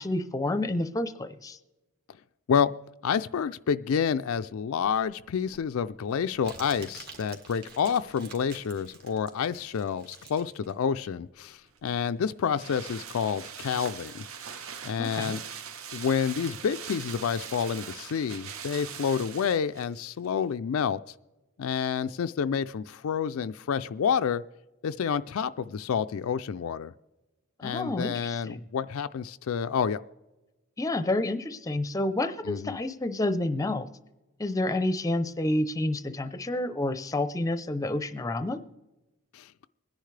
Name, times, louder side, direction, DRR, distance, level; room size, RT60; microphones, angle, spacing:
voice 1, 0.0-1.6 15.0-15.4 27.6-28.6 30.8-33.9 34.4-38.6, left 1 dB, 15° left, 11 dB, 0.6 m, -29 dB
voice 2, 3.0-14.2 14.8-15.4 15.9-21.0 21.6-24.4 24.8-26.9 27.6-30.0 32.5-32.8 39.3-39.5, left 7 dB, 65° left, 11 dB, 0.4 m, -29 dB
Crumpling crinkling, 4.8-11.9, right 4 dB, 45° right, 2.0 m, -49 dB
sound 1, 11.8-19.9 20.2-20.3, right 7 dB, 70° right, 0.9 m, -41 dB
23.5 x 10.0 x 3.3 m, 1.1 s
head